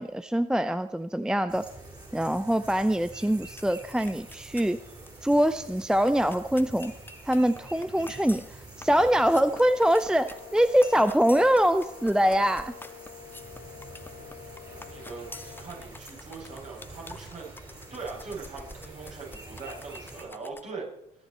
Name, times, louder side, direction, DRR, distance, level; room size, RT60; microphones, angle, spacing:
voice 1, 0.0-1.6 2.1-4.8 5.2-6.9 7.3-12.7, equal, 5° right, 13 dB, 0.5 m, -24 dB
sound 1, 1.5-20.2, right 2 dB, 25° right, 6.7 m, -47 dB
sound 2, 3.6-3.8 4.1-4.7 5.1-5.2 5.3-20.7, left 2 dB, 10° left, 1.0 m, -47 dB
sound 3, 9.2-15.8, left 12 dB, 60° left, 0.9 m, -48 dB
voice 2, 14.7-17.5 17.9-20.9, right 4 dB, 45° right, -2 dB, 7.3 m, -41 dB
22.0 x 10.0 x 4.4 m, 0.81 s
hypercardioid pair, 65°, 17 cm